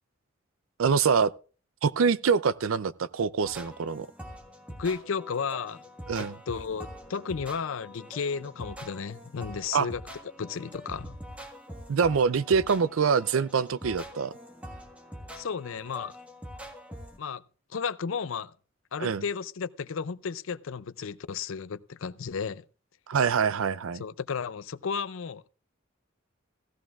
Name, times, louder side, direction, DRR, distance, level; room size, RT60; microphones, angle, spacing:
voice 1, 0.8-1.3 1.8-4.1 6.1-6.4 9.7-9.9 11.9-14.3 19.0-19.2 23.1-24.0, right 6 dB, 80° right, 0.5 m, -25 dB
sound 1, 3.4-17.2, equal, 5° right, 1.5 m, -44 dB
voice 2, 4.8-5.8 6.2-10.0 10.4-11.2 15.3-16.2 17.2-17.4 17.7-18.5 18.9-22.6 23.9-25.5, left 6 dB, 75° left, 0.5 m, -33 dB
16.5 x 14.0 x 2.4 m
head